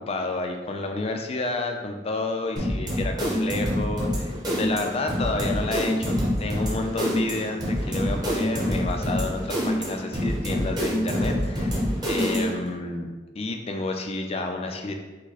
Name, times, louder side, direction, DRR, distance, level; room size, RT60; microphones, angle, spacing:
voice 1, 0.1-13.1 13.3-14.9, left 2 dB, 35° left, 4 dB, 0.4 m, -30 dB
sound 1, 2.6-12.7, equal, 20° right, 1.0 m, -26 dB
4.8 x 2.2 x 4.0 m, 1.2 s
head